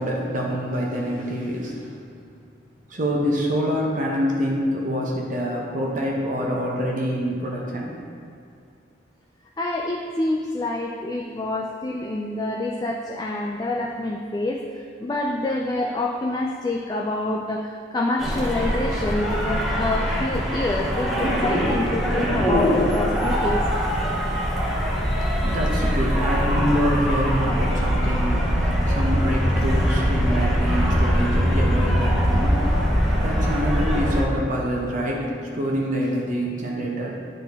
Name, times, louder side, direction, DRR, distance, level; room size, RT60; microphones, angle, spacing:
voice 1, 0.0-2.0 2.9-8.0 25.0-37.1, equal, 40° right, -2 dB, 0.8 m, -26 dB
voice 2, 9.6-23.6, left 2 dB, 20° left, 0 dB, 0.3 m, -27 dB
sound 1, 18.2-34.2, equal, ahead, 0.8 m, -22 dB
9.8 x 3.9 x 3.5 m, 2.4 s
head